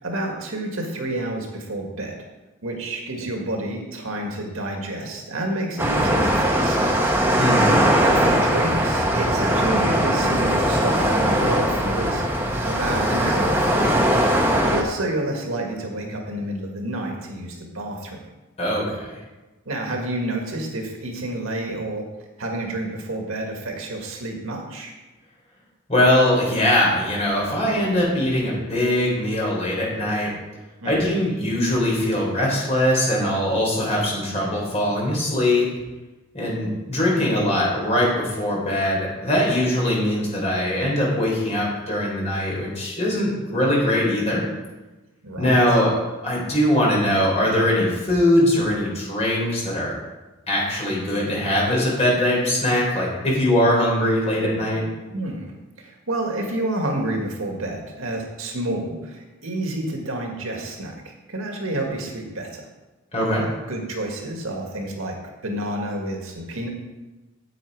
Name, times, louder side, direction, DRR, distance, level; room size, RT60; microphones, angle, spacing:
voice 1, 0.0-2.2 2.6-6.9 8.0-14.1 14.6-18.3 19.7-22.1 22.4-24.9 30.8-31.1 45.2-45.8 55.1-55.5 55.8-62.7 63.3-66.7, right 1 dB, 80° right, 2 dB, 1.9 m, -29 dB
sound 1, 5.8-14.8, equal, 10° right, 1.0 m, -20 dB
voice 2, 7.4-7.7 18.6-19.1 25.9-30.4 30.8-35.7 36.3-44.4 45.4-45.9 46.2-50.0 50.5-54.8 63.1-63.5, left 1 dB, 30° left, -3 dB, 3.6 m, -21 dB
9.0 x 8.6 x 4.7 m, 1.1 s
head